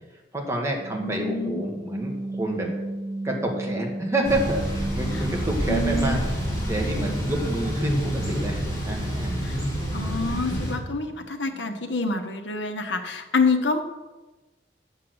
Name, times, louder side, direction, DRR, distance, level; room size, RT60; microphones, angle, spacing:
voice 1, 0.3-2.7 3.2-6.3 6.7-9.5, right 1 dB, 15° right, 0 dB, 1.6 m, -28 dB
sound 1, 0.8-6.0 6.4-12.6, right 1 dB, 40° right, 2.2 m, -36 dB
voice 2, 1.0-1.6 5.1-5.3 5.7-6.2 9.4-9.6 9.9-13.8, left 3 dB, 80° left, 6 dB, 1.2 m, -27 dB
Thunder / Bicycle, 4.2-10.7, equal, 20° left, 3.6 m, -28 dB
8.4 x 6.8 x 7.9 m, 1.2 s
head